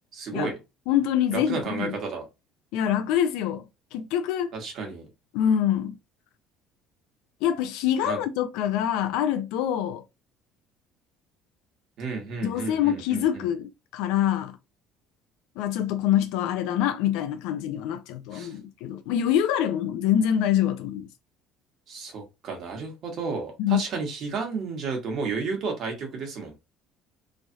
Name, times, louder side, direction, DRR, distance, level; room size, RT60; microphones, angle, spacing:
voice 1, 0.1-0.5 1.3-2.2 4.5-5.1 8.0-8.2 12.0-13.5 18.3-18.5 21.9-26.6, right 4 dB, 45° right, 1.2 m, -32 dB
voice 2, 0.9-1.9 2.7-3.6 3.9-4.5 5.3-5.9 7.4-10.0 12.4-14.6 15.6-21.1 23.6-23.8, left 10 dB, 85° left, 0.3 m, -25 dB
3.1 x 2.3 x 2.7 m
cardioid pair, 155°, 0 cm